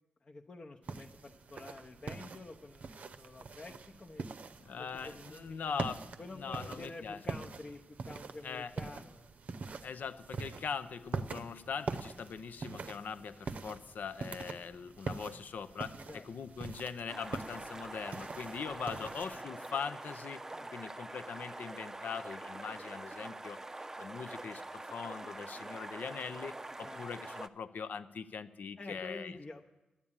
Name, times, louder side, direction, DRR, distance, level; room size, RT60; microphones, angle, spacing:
voice 1, 0.2-4.3 4.7-5.7 6.2-9.3 16.0-16.3 18.9-19.5 20.5-20.7 26.8-27.0 28.8-29.6, left 2 dB, 35° left, 1 dB, 0.7 m, -49 dB
sound 1, 0.8-19.4, right 4 dB, 55° right, 0.7 m, -44 dB
voice 2, 4.6-6.0 6.3-7.2 8.4-8.7 9.8-20.4 20.7-23.6 24.0-29.4, left 6 dB, 75° left, 12 dB, 0.6 m, -41 dB
sound 2, 17.1-27.5, right 2 dB, 15° right, 0.5 m, -45 dB
11.0 x 9.7 x 8.8 m, 0.99 s
wide cardioid pair, 125°, 3 cm